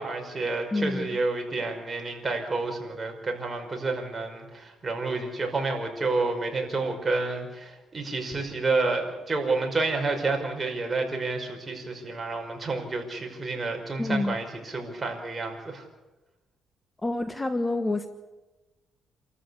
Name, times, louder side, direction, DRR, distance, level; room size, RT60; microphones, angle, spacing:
voice 1, 0.0-15.8, right 3 dB, 25° right, 3 dB, 5.4 m, -29 dB
voice 2, 0.7-1.2 14.0-14.4 17.0-18.1, left 2 dB, 15° left, 9 dB, 1.3 m, -27 dB
29.0 x 14.0 x 8.2 m, 1.1 s
cardioid pair, 90°, 0 cm